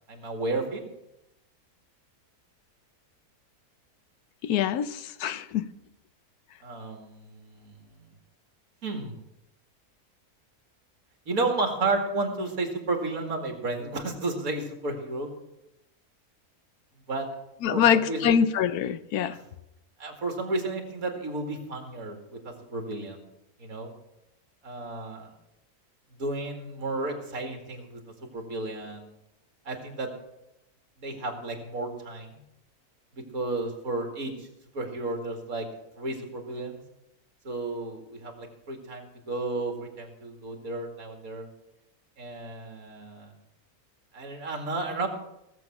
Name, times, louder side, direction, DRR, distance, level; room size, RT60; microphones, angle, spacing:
voice 1, 0.1-0.8 6.6-8.1 8.8-9.2 11.3-15.3 17.1-17.3 17.7-18.3 19.3-19.4 20.0-23.2 23.6-23.9 24.6-25.3 26.2-28.0 28.3-29.1 29.7-30.1 31.0-32.4 33.1-34.5 34.7-35.7 36.0-36.8 37.4-41.5 42.2-43.3 44.1-45.1, right 2 dB, 65° right, 3 dB, 2.6 m, -32 dB
voice 2, 4.4-5.6 17.6-19.4, left 8 dB, 85° left, 14 dB, 1.2 m, -24 dB
17.5 x 7.6 x 6.0 m, 0.88 s
omnidirectional pair, 1.6 m